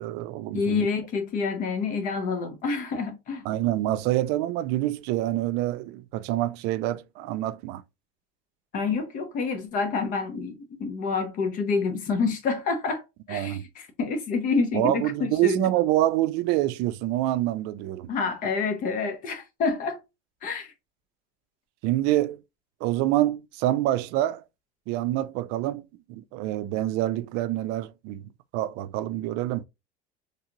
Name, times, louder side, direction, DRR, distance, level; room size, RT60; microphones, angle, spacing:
voice 1, 0.0-0.9 3.4-7.8 13.3-13.6 14.7-18.1 21.8-22.4 22.8-24.4 24.9-25.8 26.1-28.2 28.5-29.6, right 14 dB, 70° right, 0.4 m, -26 dB
voice 2, 0.5-3.5 8.7-13.0 13.3-15.7 18.1-20.0 20.4-20.7, left 4 dB, 50° left, 0.9 m, -28 dB
3.3 x 2.8 x 2.5 m
cardioid pair, 125°, 18 cm